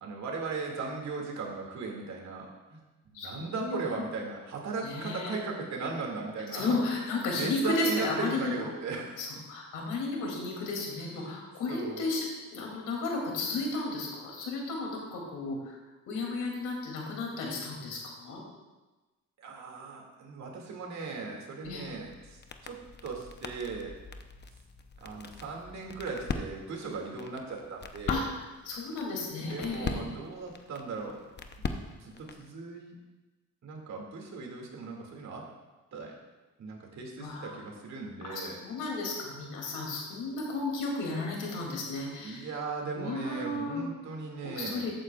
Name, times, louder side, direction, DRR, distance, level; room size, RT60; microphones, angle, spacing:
voice 1, 0.0-2.8 3.1-6.8 7.3-9.3 11.1-11.4 11.7-12.0 19.4-23.9 25.0-28.3 29.4-31.2 31.9-33.0 33.6-35.5 35.9-36.2 36.6-38.6 42.2-44.9, right 4 dB, 65° right, 0 dB, 2.3 m, -38 dB
voice 2, 3.1-3.8 4.8-5.3 6.5-8.6 9.2-15.7 16.1-18.4 21.6-21.9 28.1-28.2 28.6-30.0 37.2-37.6 38.2-42.5 42.9-43.9 44.4-44.9, left 3 dB, 85° left, -1 dB, 2.8 m, -33 dB
sound 1, 21.6-32.5, left 4 dB, 35° left, 0.8 m, -41 dB
14.0 x 9.1 x 2.4 m, 1.2 s
cardioid pair, 90°, 30 cm